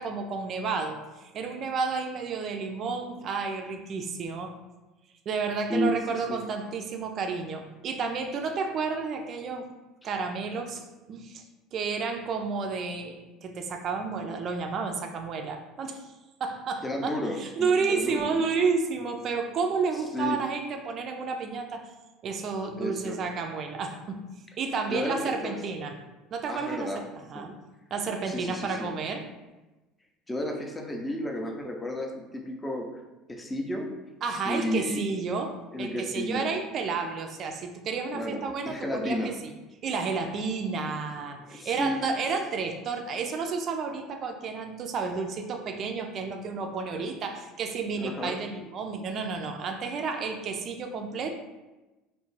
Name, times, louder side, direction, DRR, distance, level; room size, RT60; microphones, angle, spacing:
voice 1, 0.0-4.5 5.3-9.7 10.0-11.4 11.7-16.1 16.4-21.9 22.2-24.2 24.6-25.9 26.3-27.5 27.9-29.3 34.2-39.3 39.8-51.3, right 4 dB, 50° right, 4 dB, 0.3 m, -31 dB
voice 2, 5.7-6.4 16.8-18.5 20.1-20.5 22.8-23.2 24.9-25.5 26.5-27.0 27.3-27.5 28.3-28.9 30.3-33.0 33.3-33.9 34.4-35.1 35.7-36.5 38.1-39.4 40.8-40.9 41.4-42.1 46.9-47.1 47.9-48.4, left 1 dB, 15° left, 2 dB, 0.5 m, -32 dB
2.3 x 2.0 x 3.1 m, 1.1 s
hypercardioid pair, 70°, 0 cm